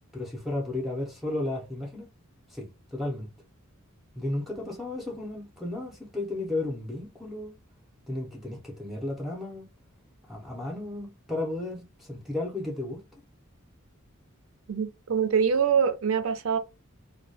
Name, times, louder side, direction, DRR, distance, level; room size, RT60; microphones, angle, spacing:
voice 1, 0.1-2.1 2.5-3.3 4.2-7.6 8.1-9.7 10.3-13.0, left 2 dB, ahead, 0.5 m, -34 dB
voice 2, 14.7-16.6, right 6 dB, 70° right, 0.5 m, -24 dB
2.2 x 2.1 x 2.6 m
head